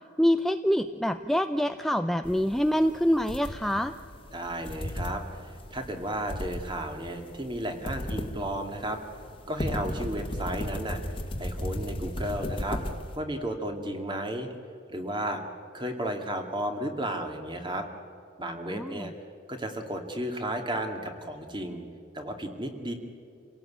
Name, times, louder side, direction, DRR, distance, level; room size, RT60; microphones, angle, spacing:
voice 1, 0.2-3.9 18.7-19.1, equal, ahead, 8 dB, 0.5 m, -25 dB
sound 1, 2.2-13.2, left 1 dB, 30° left, 1.7 m, -36 dB
voice 2, 4.3-9.0 9.5-11.0 11.4-12.8 13.2-14.5 14.9-15.4 15.7-17.9 18.4-19.1 19.5-21.8 22.1-22.9, right 1 dB, 25° right, 5 dB, 2.3 m, -33 dB
28.0 x 17.5 x 8.7 m, 2.6 s
head